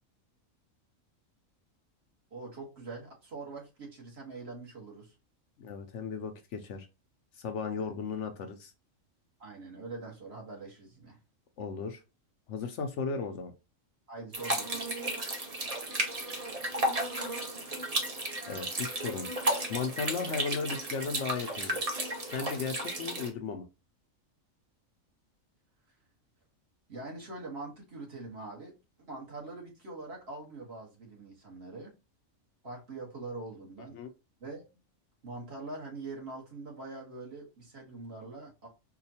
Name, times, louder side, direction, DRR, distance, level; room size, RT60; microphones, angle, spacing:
voice 1, 2.3-5.1 7.8-7.9 9.4-11.2 14.1-14.9 26.9-28.7 29.0-31.9 32.6-34.0 34.4-34.6 35.2-38.7, right 3 dB, 50° right, -2 dB, 1.5 m, -43 dB
voice 2, 5.6-6.9 7.4-8.7 11.6-12.0 12.5-13.5 18.5-21.8 22.3-23.6 33.9-34.1, left 5 dB, 70° left, 6 dB, 0.8 m, -36 dB
sound 1, 14.3-23.3, right 1 dB, 35° right, 0.8 m, -33 dB
4.8 x 2.2 x 2.7 m, 0.27 s
omnidirectional pair, 1.4 m